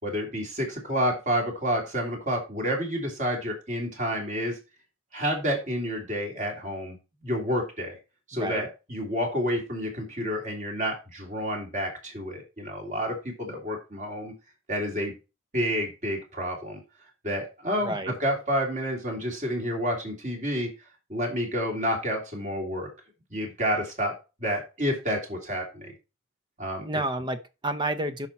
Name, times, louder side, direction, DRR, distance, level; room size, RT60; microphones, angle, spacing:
voice 1, 0.0-4.6 5.1-7.0 7.2-8.0 8.3-14.3 14.7-15.1 15.5-16.8 17.2-20.7 21.1-22.9 23.3-24.1 24.4-25.9 26.6-26.9, equal, 35° right, 2.9 m, -29 dB
voice 2, 17.8-18.2 26.8-28.3, right 1 dB, 20° right, 0.7 m, -30 dB
8.7 x 5.9 x 4.2 m
head